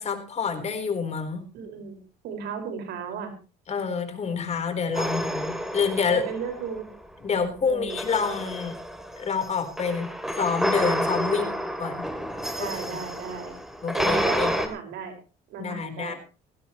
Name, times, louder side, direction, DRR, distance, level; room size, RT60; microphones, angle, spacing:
voice 1, 0.0-1.5 3.7-6.2 7.2-8.8 9.2-11.5 11.8-12.0 12.6-13.0 13.8-14.5 15.6-16.1, left 5 dB, 40° left, 7 dB, 4.0 m, -28 dB
voice 2, 1.5-2.0 2.2-3.3 4.9-5.3 6.1-6.9 7.6-8.0 11.2-11.5 12.6-13.6 14.0-15.2 15.5-16.2, right 6 dB, 80° right, 6 dB, 5.4 m, -35 dB
sound 1, 4.9-7.0 7.9-14.7, equal, ahead, 3.1 m, -29 dB
18.5 x 16.5 x 3.1 m, 0.34 s
cardioid pair, 110°, 17 cm